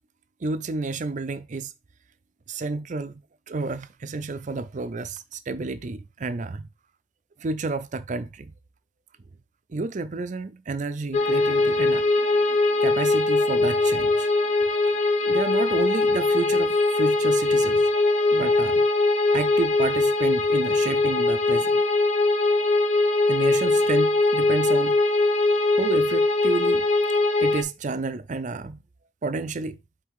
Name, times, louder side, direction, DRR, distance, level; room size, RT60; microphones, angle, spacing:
voice 1, 0.4-1.7 2.5-3.1 3.5-6.7 7.4-8.5 9.7-12.0 12.8-14.3 15.2-17.8 18.3-18.9 19.3-21.8 23.3-25.0 25.8-26.9 27.4-28.8 29.2-29.8, right 3 dB, 45° right, 0.5 m, -30 dB
sound 1, 11.1-27.6, left 2 dB, 40° left, 0.9 m, -21 dB
8.4 x 3.4 x 3.6 m
head